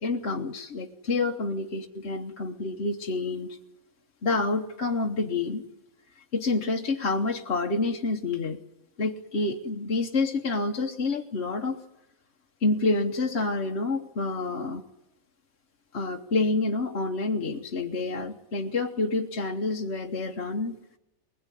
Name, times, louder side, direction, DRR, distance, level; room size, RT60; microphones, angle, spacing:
voice 1, 0.0-3.6 4.2-5.6 6.2-8.6 9.0-11.8 12.6-14.8 15.9-20.8, left 3 dB, 50° left, 2 dB, 1.4 m, -28 dB
23.0 x 20.5 x 9.9 m, 0.89 s
omnidirectional pair, 1.5 m